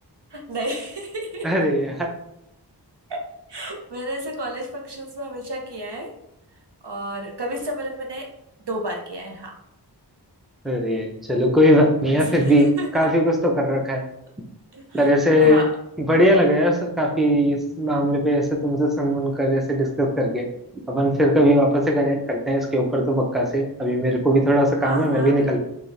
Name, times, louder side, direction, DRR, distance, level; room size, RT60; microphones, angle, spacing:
voice 1, 0.3-1.5 3.1-3.2 3.5-6.1 6.8-8.3 8.6-9.5 12.1-13.1 14.7-15.1 15.4-15.7 24.8-25.6, right 1 dB, 70° right, 1 dB, 0.8 m, -32 dB
voice 2, 1.4-2.1 10.6-14.0 14.9-15.6 16.0-20.5 20.9-25.6, equal, ahead, 1 dB, 0.6 m, -19 dB
4.5 x 2.3 x 3.2 m, 0.81 s
wide cardioid pair, 40°, 42 cm